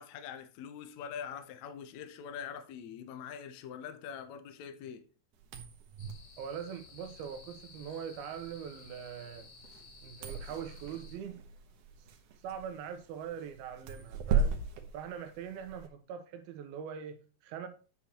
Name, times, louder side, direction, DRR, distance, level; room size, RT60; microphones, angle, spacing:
voice 1, 0.0-5.0, left 8 dB, 80° left, 1.6 m, -44 dB
sound 1, 5.4-15.9, right 5 dB, 70° right, 2.3 m, -38 dB
sound 2, 6.0-11.1, left 5 dB, 45° left, 2.3 m, -55 dB
voice 2, 6.4-9.5 10.0-11.4 12.4-14.6 14.9-17.7, right 8 dB, 85° right, 2.7 m, -42 dB
8.4 x 7.4 x 2.9 m
omnidirectional pair, 4.3 m